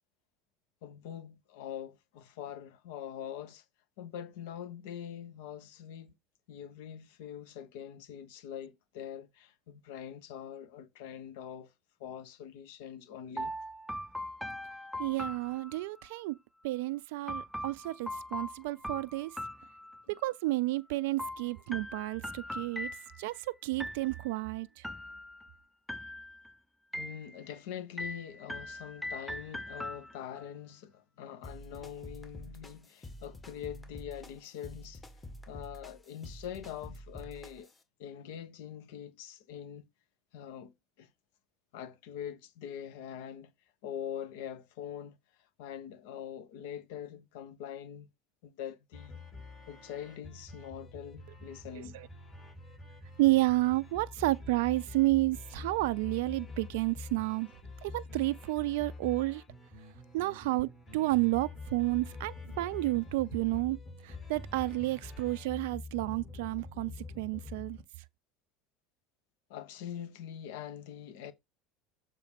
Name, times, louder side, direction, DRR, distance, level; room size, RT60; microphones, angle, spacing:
voice 1, 0.8-3.6 4.0-6.2 6.5-11.7 12.0-13.6 20.0-20.1 26.9-35.0 35.5-37.7 38.0-39.9 40.3-41.1 41.7-43.5 43.8-45.2 45.6-48.1 48.4-49.2 49.7-52.0 69.5-71.3, left 9 dB, 65° left, 1.0 m, -43 dB
sound 1, 13.4-16.1 17.3-20.3 21.2-23.4 23.8-24.4 24.8-25.5 25.9-26.5 26.9-27.6 28.0-30.5, left 1 dB, ahead, 0.6 m, -41 dB
voice 2, 15.0-16.4 16.6-19.3 20.1-22.9 23.2-23.3 23.6-24.8 53.2-57.5 57.8-59.4 60.1-63.8 64.0-67.8, right 20 dB, 65° right, 0.3 m, -31 dB
sound 2, 31.4-37.8, left 1 dB, 20° left, 1.6 m, -48 dB
sound 3, 48.9-67.8, left 3 dB, 35° left, 3.7 m, -46 dB
6.9 x 3.7 x 4.8 m
figure-of-eight pair, 70°, 0 cm